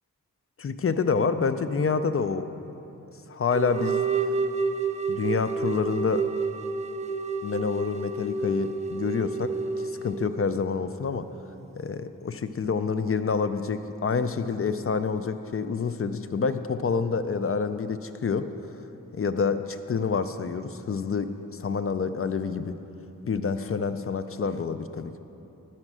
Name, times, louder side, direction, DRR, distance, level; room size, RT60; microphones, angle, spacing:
voice 1, 0.6-2.5 3.3-4.0 5.1-6.2 7.4-9.5 9.8-11.3 11.8-18.5 19.1-22.7 23.2-25.2, left 5 dB, 45° left, 10 dB, 0.4 m, -27 dB
sound 1, 3.5-10.3, right 4 dB, 20° right, 0.3 m, -29 dB
10.5 x 4.4 x 6.1 m, 3.0 s
wide cardioid pair, 55°, 33 cm